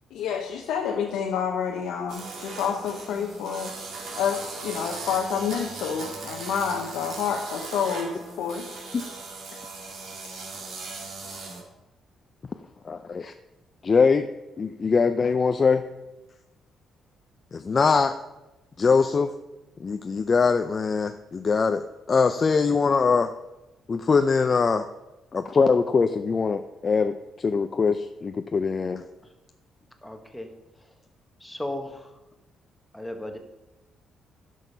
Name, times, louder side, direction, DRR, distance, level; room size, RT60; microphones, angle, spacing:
voice 1, 0.1-3.7 4.2-8.7, left 7 dB, 85° left, 1 dB, 0.9 m, -28 dB
sound 1, 2.1-11.6, right 3 dB, 70° right, 2.7 m, -38 dB
voice 2, 12.8-13.3 13.8-14.3 14.6-15.8 17.5-18.1 18.8-19.3 19.8-23.3 23.9-24.8 25.3-29.0, left 5 dB, 40° left, 8 dB, 0.5 m, -22 dB
voice 3, 30.0-30.5 31.4-32.1 32.9-33.4, left 1 dB, 5° left, 5 dB, 1.4 m, -35 dB
11.0 x 6.5 x 5.5 m, 1.0 s
cardioid pair, 90°, 0 cm